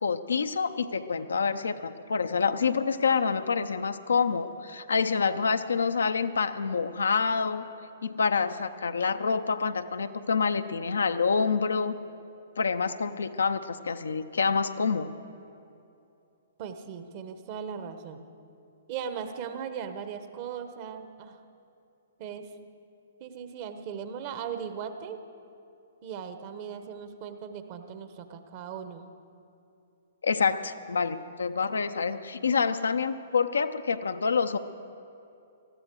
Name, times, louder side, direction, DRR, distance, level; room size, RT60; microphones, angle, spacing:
voice 1, 0.0-7.6 8.0-12.0 12.6-15.1 30.2-34.6, left 5 dB, 70° left, 10 dB, 0.6 m, -27 dB
voice 2, 16.6-18.2 18.9-21.4 22.2-22.5 23.2-25.2 26.0-29.1, right 7 dB, 40° right, 9 dB, 1.1 m, -38 dB
19.0 x 14.0 x 4.7 m, 2.7 s
figure-of-eight pair, 120°, 0 cm